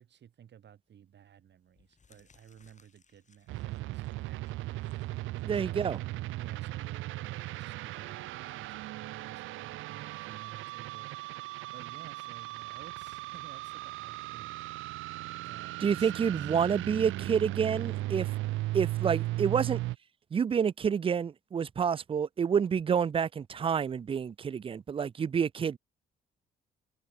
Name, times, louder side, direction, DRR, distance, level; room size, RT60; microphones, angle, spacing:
voice 1, 0.0-4.8 5.5-6.0 6.3-15.1 15.5-16.5, right 9 dB, 60° right, 5.8 m, -55 dB
sound 1, 0.9-1.2 1.6-8.1, left 5 dB, 35° left, 5.9 m, -68 dB
sound 2, 3.5-20.0, right 17 dB, 85° right, 0.6 m, -37 dB
voice 2, 5.4-6.0 15.8-18.3 18.7-19.8 20.3-25.8, right 7 dB, 25° right, 0.4 m, -28 dB
cardioid pair, 90°, 20 cm